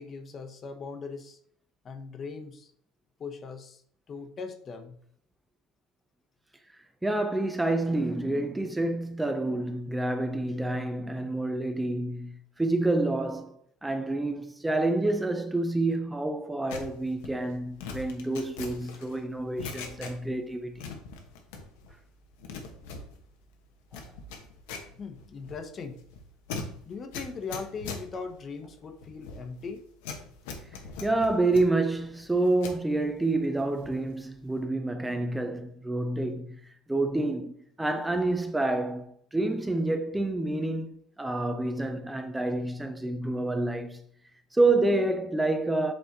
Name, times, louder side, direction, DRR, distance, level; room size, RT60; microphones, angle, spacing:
voice 1, 0.0-1.4 1.8-2.7 3.2-3.8 4.1-4.9 25.0-26.0 26.9-29.8, left 4 dB, 40° left, 1.0 m, -39 dB
voice 2, 6.7-13.6 13.8-20.9 23.9-24.0 31.0-36.6 36.9-44.0 44.5-45.9, right 2 dB, 10° right, 0.6 m, -28 dB
sound 1, 16.7-20.5 20.7-21.9 22.2-32.8 33.3-34.1 34.4-34.7, left 4 dB, 85° left, 1.2 m, -42 dB
7.9 x 3.3 x 4.0 m
supercardioid pair, 100°, 0 cm